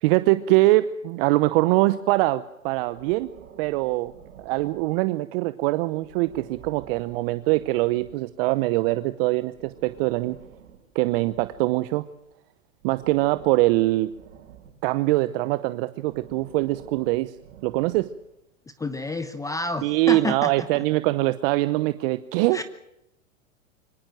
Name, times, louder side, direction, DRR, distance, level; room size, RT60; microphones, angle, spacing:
voice 1, 0.0-3.3 3.6-4.1 4.4-10.4 10.9-12.1 12.8-14.1 14.8-17.3 17.6-18.1 19.8-22.6, right 19 dB, 45° right, 13 dB, 0.9 m, -23 dB
Breathing, 2.7-5.2 5.9-8.3 9.4-12.2 12.8-15.0 16.0-18.3, right 8 dB, 60° right, 5.3 m, -50 dB
voice 2, 18.8-20.7 22.5-22.6, left 2 dB, 10° left, 11 dB, 0.9 m, -29 dB
24.5 x 18.0 x 7.6 m, 0.84 s
hypercardioid pair, 115°, 41 cm